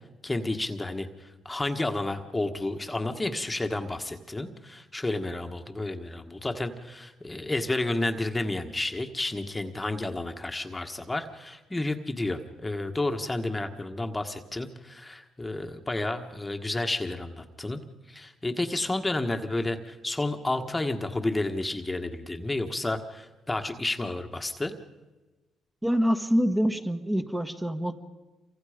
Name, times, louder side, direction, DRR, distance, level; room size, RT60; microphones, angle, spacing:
voice 1, 0.2-17.8 18.1-24.7, left 2 dB, 15° left, 6 dB, 1.5 m, -31 dB
voice 2, 25.8-27.9, equal, 10° right, 5 dB, 1.6 m, -25 dB
28.0 x 24.5 x 5.2 m, 1.2 s
cardioid pair, 90°, 0 cm